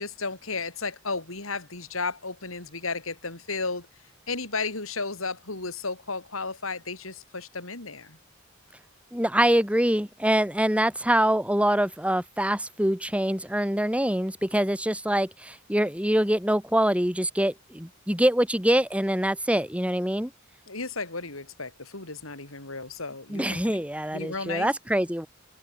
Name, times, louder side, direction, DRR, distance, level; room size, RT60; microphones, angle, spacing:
voice 1, 0.0-3.9 4.3-8.2 20.7-23.6 24.1-24.7, left 4 dB, 80° left, 5.2 m, -33 dB
voice 2, 9.1-20.3 23.3-25.3, right 1 dB, 5° right, 6.5 m, -24 dB
open air
head